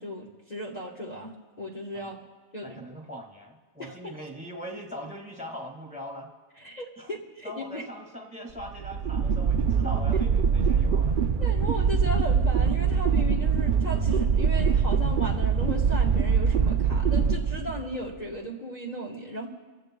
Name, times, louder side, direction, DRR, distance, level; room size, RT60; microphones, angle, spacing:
voice 1, 0.0-2.2 2.5-2.8 3.8-4.2 6.6-7.8 11.4-19.5, equal, 35° left, -3 dB, 1.4 m, -36 dB
voice 2, 2.6-6.3 7.0-7.1 7.4-11.2, equal, 5° right, 1 dB, 1.9 m, -40 dB
sound 1, 8.6-18.1, right 6 dB, 55° right, 0.7 m, -23 dB
27.0 x 16.0 x 2.3 m, 1.3 s
omnidirectional pair, 1.3 m